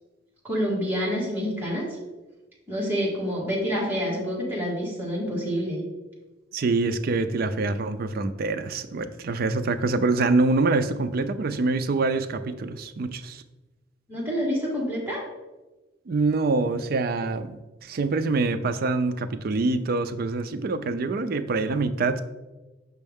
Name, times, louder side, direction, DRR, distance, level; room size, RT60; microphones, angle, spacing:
voice 1, 0.4-1.9 2.7-5.8 14.1-15.2, equal, 10° right, -6 dB, 1.7 m, -27 dB
voice 2, 6.5-13.4 16.1-22.2, right 3 dB, 55° right, 9 dB, 0.4 m, -25 dB
6.2 x 5.5 x 3.5 m, 1.1 s
head